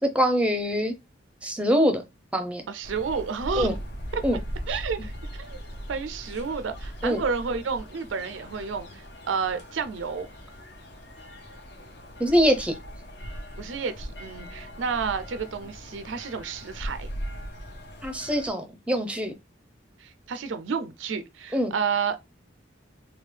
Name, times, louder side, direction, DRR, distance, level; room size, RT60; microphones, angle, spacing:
voice 1, 0.0-1.0 1.4-2.0 2.3-2.6 3.6-3.7 4.2-4.4 7.0-7.2 12.2-12.7 18.0-19.3 21.5-21.7, equal, 5° right, 0.6 m, -23 dB
voice 2, 2.7-3.7 4.1-4.2 4.7-5.1 5.4-5.6 5.9-10.3 13.6-17.1 20.0-22.2, right 5 dB, 80° right, 0.5 m, -30 dB
sound 1, 2.8-18.5, equal, 60° left, 0.9 m, -39 dB
3.6 x 2.3 x 3.2 m
head